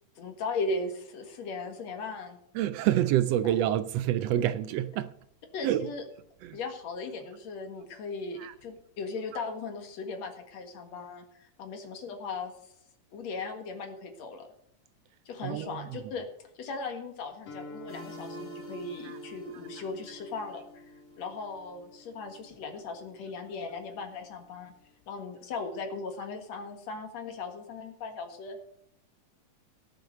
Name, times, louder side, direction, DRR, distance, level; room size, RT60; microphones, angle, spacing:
voice 1, 0.2-2.4 2.9-3.0 3.4-3.6 5.5-6.0 6.5-12.7 13.1-14.5 15.3-16.3 16.6-20.6 21.2-24.7 25.1-28.6, left 3 dB, 65° left, 2.8 m, -38 dB
voice 2, 2.5-5.1 5.6-5.9 6.4-6.6 8.4-8.5 9.3-9.4 15.4-16.1 19.0-19.2, right 12 dB, 80° right, 1.5 m, -28 dB
Guitar, 17.5-25.2, left 3 dB, 85° left, 4.2 m, -50 dB
sound 1, 17.9-21.6, right 2 dB, 5° right, 1.7 m, -47 dB
17.0 x 6.8 x 6.4 m
omnidirectional pair, 3.4 m